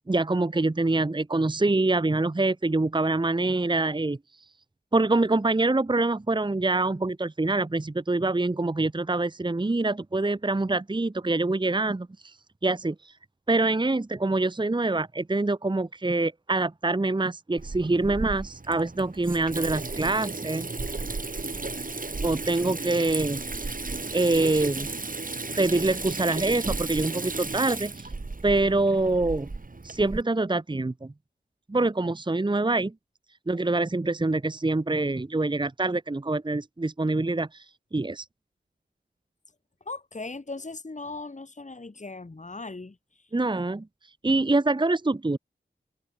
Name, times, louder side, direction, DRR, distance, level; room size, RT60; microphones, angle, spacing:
voice 1, 0.0-4.2 4.9-12.3 12.6-13.1 13.5-20.7 22.2-23.8 24.1-24.9 25.6-28.1 28.4-29.5 29.8-31.1 31.7-32.9 33.5-37.6 37.9-38.2 43.3-43.9 44.2-45.4, right 2 dB, 25° right, 0.9 m, -25 dB
Water tap faucet / Sink (filling or washing), 17.6-30.2, right 3 dB, 45° right, 2.3 m, -34 dB
voice 2, 39.9-43.3, left 3 dB, 40° left, 2.0 m, -38 dB
cardioid pair, 40°, 19 cm